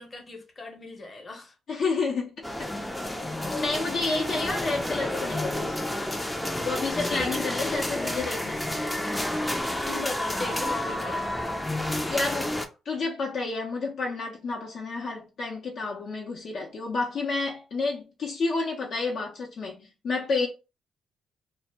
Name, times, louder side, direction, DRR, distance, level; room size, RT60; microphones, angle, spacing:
voice 1, 0.0-1.5 3.1-3.4 7.0-8.1 9.8-11.4, left 3 dB, 35° left, 0.8 m, -38 dB
voice 2, 1.7-2.7 3.3-5.8 6.6-8.6 12.1-12.5 12.9-20.5, left 3 dB, 65° left, 0.6 m, -30 dB
sound 1, 2.4-12.7, left 1 dB, 10° left, 0.4 m, -30 dB
2.1 x 2.0 x 3.3 m
cardioid pair, 70°, 0 cm